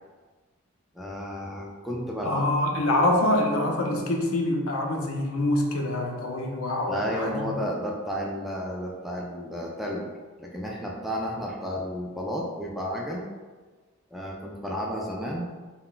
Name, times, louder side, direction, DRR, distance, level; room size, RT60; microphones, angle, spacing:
voice 1, 0.9-2.5 6.9-10.1 10.4-13.3 14.1-15.5, equal, ahead, -2 dB, 0.3 m, -32 dB
voice 2, 2.2-7.6, left 1 dB, 85° left, 1 dB, 0.5 m, -25 dB
2.2 x 2.2 x 3.8 m, 1.3 s
head